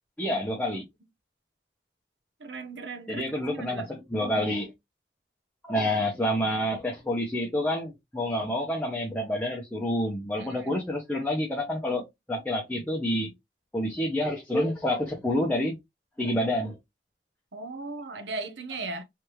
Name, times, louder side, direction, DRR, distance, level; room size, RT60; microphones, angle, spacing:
voice 1, 0.2-0.8 3.1-4.7 5.6-13.3 13.7-15.8 16.2-16.7, left 1 dB, 10° left, 0.8 m, -28 dB
voice 2, 2.4-3.2 3.5-3.9 10.4-10.8 17.5-19.0, right 3 dB, 80° right, 0.9 m, -37 dB
3.4 x 3.3 x 3.0 m
head